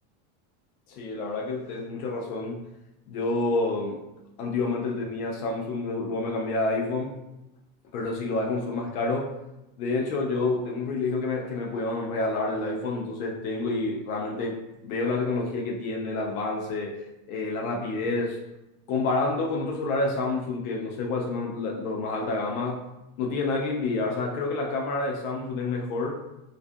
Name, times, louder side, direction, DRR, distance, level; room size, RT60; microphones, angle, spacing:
voice 1, 0.9-2.6 3.1-4.0 4.4-7.2 7.9-9.3 9.8-17.0 17.3-18.4 18.9-22.8 23.2-26.2, left 3 dB, 90° left, -1 dB, 0.5 m, -28 dB
2.4 x 2.2 x 2.5 m, 0.95 s
supercardioid pair, 110°, 42 cm